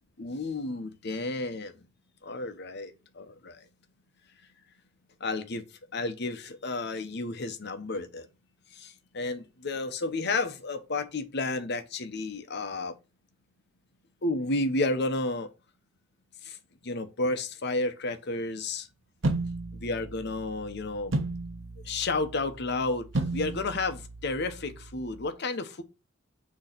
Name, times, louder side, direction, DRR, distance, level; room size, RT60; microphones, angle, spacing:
voice 1, 0.2-1.7 2.2-3.6 5.2-5.6 5.9-8.3 8.8-12.9 14.2-15.5 16.4-16.6 16.8-18.9 19.8-21.1 21.9-23.1 23.3-25.8, left 2 dB, 55° left, 0.9 m, -31 dB
sound 1, 19.2-25.3, right 2 dB, 70° right, 1.0 m, -35 dB
6.6 x 3.1 x 5.8 m
head